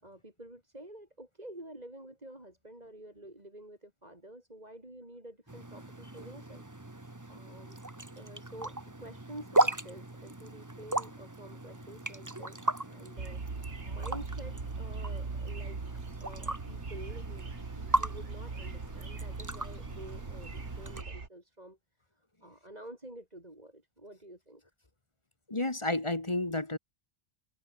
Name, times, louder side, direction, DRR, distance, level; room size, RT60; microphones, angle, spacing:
voice 1, 0.0-6.6 7.3-7.8 8.2-15.8 16.2-21.8 22.4-24.6, right 1 dB, 35° right, 5.3 m, -49 dB
sound 1, 5.5-21.0, right 2 dB, 15° right, 1.4 m, -36 dB
sound 2, 13.2-21.3, right 4 dB, 90° right, 2.6 m, -40 dB
voice 2, 25.5-26.8, left 2 dB, 25° left, 1.6 m, -31 dB
omnidirectional pair, 1.1 m